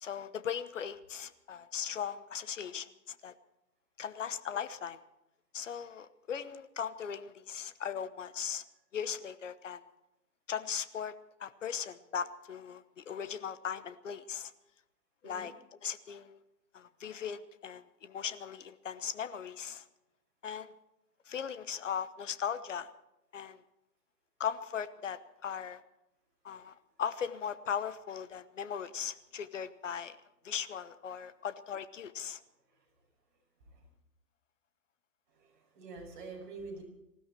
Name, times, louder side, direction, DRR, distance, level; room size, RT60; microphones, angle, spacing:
voice 1, 0.0-3.3 4.0-5.0 5.5-8.6 8.9-9.8 10.5-11.1 11.4-14.5 15.2-15.5 15.8-16.4 16.7-19.8 20.4-20.7 21.3-22.9 23.3-23.6 24.4-25.8 26.4-30.2 30.4-32.4, left 8 dB, 50° left, 14 dB, 1.1 m, -38 dB
voice 2, 35.3-36.8, right 3 dB, 30° right, -2 dB, 5.7 m, -47 dB
20.0 x 15.5 x 4.5 m, 0.91 s
hypercardioid pair, 170°, 47 cm